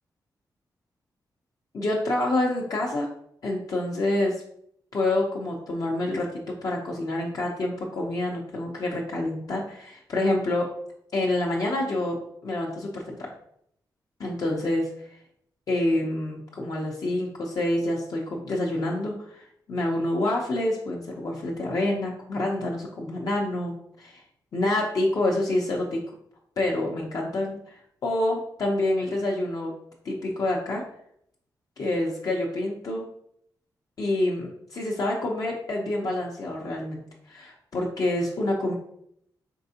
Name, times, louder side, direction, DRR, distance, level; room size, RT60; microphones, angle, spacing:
voice 1, 1.7-3.1 3.4-4.4 4.9-10.7 11.1-12.2 12.4-13.3 14.2-14.9 15.7-24.2 24.5-26.1 26.6-29.7 30.0-30.8 31.8-33.1 34.0-37.0 37.3-38.7, left 1 dB, 55° left, -2 dB, 0.6 m, -27 dB
4.5 x 3.4 x 2.7 m, 0.70 s
wide cardioid pair, 135°, 7 cm